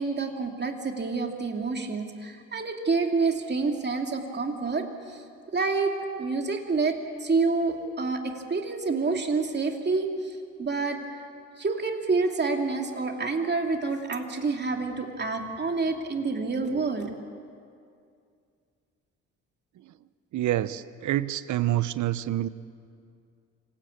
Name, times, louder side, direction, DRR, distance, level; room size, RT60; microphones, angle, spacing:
voice 1, 0.0-5.2 5.5-5.9 6.2-11.0 11.6-17.1, right 4 dB, 35° right, 3 dB, 2.8 m, -28 dB
voice 2, 20.3-22.5, right 13 dB, 75° right, 15 dB, 0.9 m, -27 dB
26.0 x 16.5 x 8.7 m, 2.3 s
cardioid pair, 90°, 30 cm